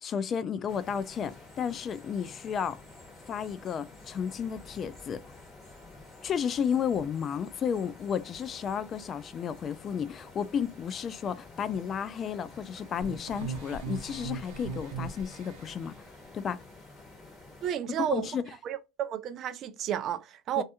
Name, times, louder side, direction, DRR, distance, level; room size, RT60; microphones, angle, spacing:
voice 1, 0.0-2.8 3.3-5.2 6.2-15.9 16.3-16.6 17.9-18.4 20.6-20.7, left 7 dB, 35° left, 0.3 m, -32 dB
sound 1, 0.7-17.7, left 2 dB, 15° left, 1.4 m, -50 dB
sound 2, 13.0-15.7, right 5 dB, 75° right, 0.6 m, -38 dB
voice 2, 17.6-18.3 18.6-20.6, right 10 dB, 45° right, 0.3 m, -32 dB
2.6 x 2.4 x 2.3 m
supercardioid pair, 105°, 0 cm